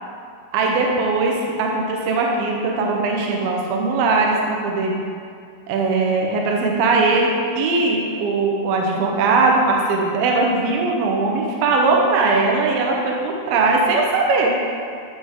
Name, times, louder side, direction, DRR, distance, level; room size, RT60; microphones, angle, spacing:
voice 1, 0.5-5.0 5.7-14.5, right 3 dB, 75° right, 0 dB, 2.6 m, -20 dB
11.5 x 6.0 x 3.6 m, 2.3 s
omnidirectional pair, 4.9 m